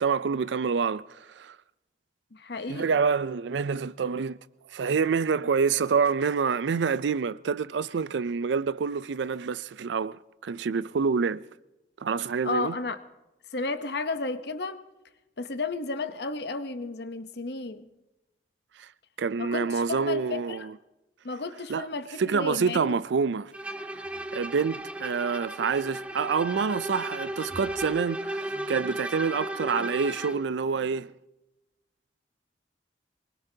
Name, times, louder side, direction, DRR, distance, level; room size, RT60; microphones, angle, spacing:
voice 1, 0.0-1.6 2.7-4.4 4.7-11.4 12.0-12.8 18.8-18.9 19.2-20.7 21.7-21.9 22.2-23.5 24.3-31.1, right 5 dB, 75° right, 0.4 m, -27 dB
voice 2, 2.3-3.0 12.4-13.0 13.5-14.8 15.4-17.9 19.4-20.7 21.2-22.9, left 3 dB, 60° left, 0.9 m, -33 dB
Bowed string instrument, 23.5-30.5, right 1 dB, 5° right, 0.6 m, -35 dB
23.5 x 20.5 x 2.8 m
head